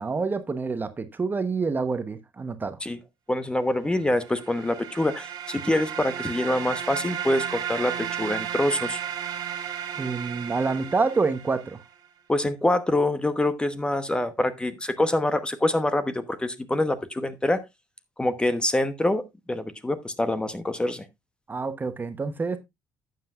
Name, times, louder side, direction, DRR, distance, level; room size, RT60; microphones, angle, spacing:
voice 1, 0.0-2.8 10.0-11.8 21.5-22.6, right 4 dB, 25° right, 0.9 m, -27 dB
voice 2, 3.3-9.0 12.3-17.6 18.2-21.0, left 1 dB, 10° left, 1.0 m, -25 dB
sound 1, 4.1-11.9, right 9 dB, 65° right, 2.0 m, -34 dB
11.5 x 7.6 x 2.4 m
cardioid pair, 95°, 8 cm